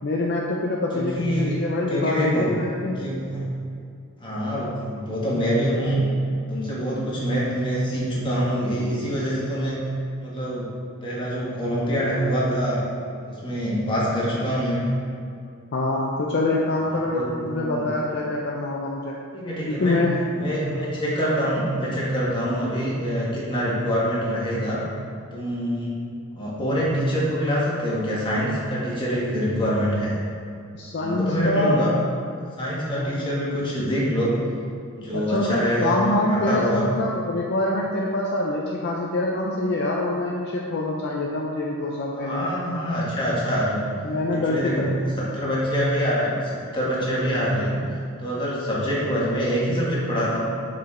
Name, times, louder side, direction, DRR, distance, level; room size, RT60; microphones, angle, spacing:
voice 1, 0.0-3.0 15.7-19.2 19.8-20.2 30.7-31.9 32.8-32.9 33.1-33.3 35.1-42.5 44.0-44.9 47.9-48.0, left 2 dB, 50° left, -2 dB, 0.5 m, -25 dB
voice 2, 0.9-1.6 1.9-2.5 3.0-3.4 4.2-6.0 6.5-9.8 10.2-10.7 11.0-12.8 13.2-14.9 17.1-17.9 19.3-20.0 20.3-24.8 25.3-26.0 26.4-30.2 31.0-31.9 32.6-34.3 35.0-36.0 36.3-36.9 42.1-43.8 44.3-44.9 45.2-46.3 46.7-47.8 48.2-50.4, equal, 25° left, -7 dB, 1.6 m, -25 dB
6.8 x 5.0 x 3.8 m, 2.4 s
head